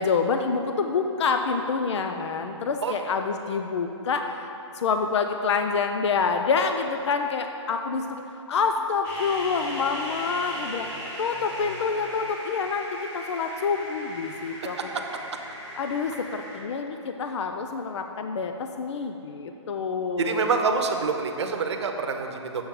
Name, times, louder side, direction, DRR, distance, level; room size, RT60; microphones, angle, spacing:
voice 1, 0.0-8.2 8.5-10.9 11.2-14.8 15.8-20.5, left 5 dB, 65° left, 6 dB, 0.5 m, -27 dB
sound 1, 9.0-16.6, equal, 20° left, 1.3 m, -38 dB
voice 2, 20.2-22.6, right 4 dB, 60° right, 4 dB, 0.8 m, -26 dB
8.5 x 7.0 x 3.7 m, 2.9 s
hypercardioid pair, 165°, 16 cm